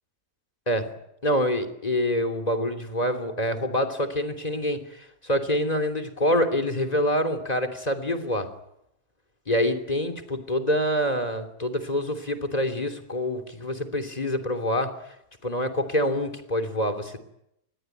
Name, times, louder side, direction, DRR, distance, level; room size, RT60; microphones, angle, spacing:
voice 1, 1.2-8.5 9.5-15.1 15.4-17.2, equal, 20° left, 7 dB, 3.0 m, -26 dB
26.5 x 20.5 x 9.3 m, 0.79 s
omnidirectional pair, 1.9 m